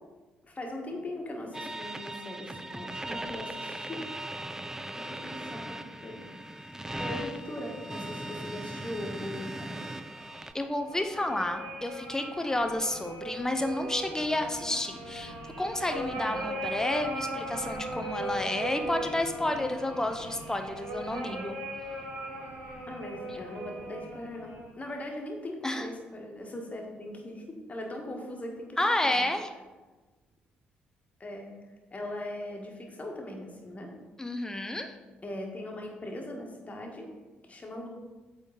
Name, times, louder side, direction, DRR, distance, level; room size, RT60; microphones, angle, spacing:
voice 1, 0.4-4.1 4.9-6.2 7.0-9.8 20.1-20.2 22.9-29.3 31.2-31.5 31.9-33.9 35.2-37.1 37.4-37.9, left 1 dB, 25° left, 1 dB, 1.6 m, -40 dB
sound 1, 1.5-10.5, right 1 dB, 10° right, 0.4 m, -39 dB
sound 2, 10.3-24.7, right 1 dB, 65° right, 1.9 m, -38 dB
voice 2, 10.5-21.6 25.6-25.9 28.8-29.5 34.2-34.9, left 1 dB, 10° left, 6 dB, 0.8 m, -30 dB
8.1 x 3.8 x 3.9 m, 1.2 s
figure-of-eight pair, 45°, 5 cm